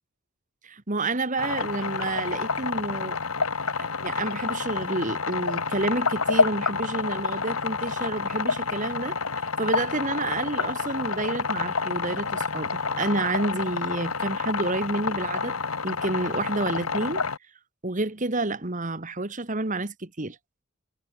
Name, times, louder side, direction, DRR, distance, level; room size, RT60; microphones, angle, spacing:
voice 1, 0.6-3.2 3.8-9.2 9.6-15.6 15.8-17.2 17.8-20.4, right 2 dB, 35° right, 1.6 m, -29 dB
sound 1, 1.4-17.4, left 4 dB, 90° left, 2.3 m, -28 dB
head